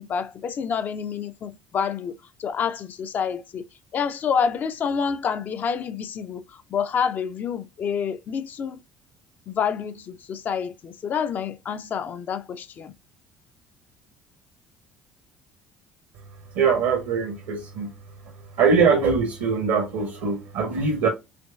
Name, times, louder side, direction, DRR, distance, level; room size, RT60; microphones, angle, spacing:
voice 1, 0.0-3.6 3.9-8.8 9.5-12.9, left 7 dB, 40° left, 0.5 m, -28 dB
voice 2, 16.5-17.9 18.6-21.1, right 5 dB, 65° right, 0.9 m, -22 dB
5.1 x 3.0 x 2.3 m
figure-of-eight pair, 55°, 5 cm